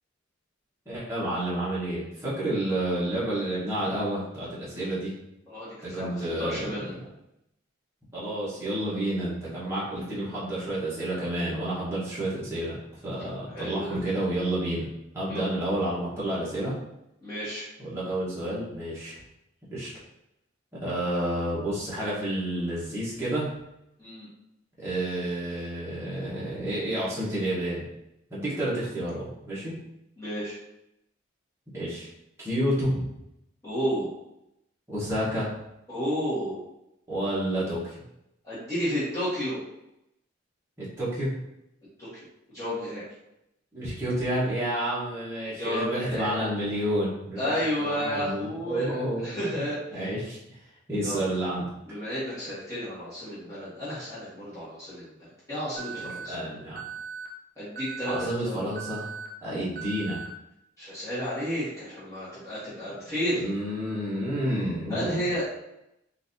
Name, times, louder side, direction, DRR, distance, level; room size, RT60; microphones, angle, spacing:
voice 1, 0.9-5.1 5.8-6.7 8.1-14.8 15.1-16.7 17.8-19.2 19.7-19.9 20.7-23.5 24.8-27.8 28.3-29.7 31.7-32.1 32.4-33.1 34.9-35.5 37.1-38.0 40.8-41.3 43.7-49.7 49.9-50.6 50.9-51.6 56.0-56.8 58.0-59.1 59.4-60.2 63.3-65.3, right 1 dB, 15° right, -10 dB, 1.0 m, -30 dB
voice 2, 5.5-6.9 13.2-14.0 15.3-15.7 17.2-17.7 24.0-24.3 30.2-30.6 33.6-34.1 35.9-36.6 38.4-39.6 42.0-42.1 42.5-43.0 45.6-46.4 47.4-49.8 51.0-51.2 51.9-55.0 55.5-56.3 57.6-58.7 60.8-63.5 64.9-65.5, equal, 15° left, -12 dB, 1.3 m, -32 dB
Alarm, 55.8-56.3 56.8-57.3 57.8-58.3 58.8-59.3 59.8-60.3, right 7 dB, 40° right, 0.4 m, -38 dB
4.0 x 2.6 x 2.6 m, 0.85 s
head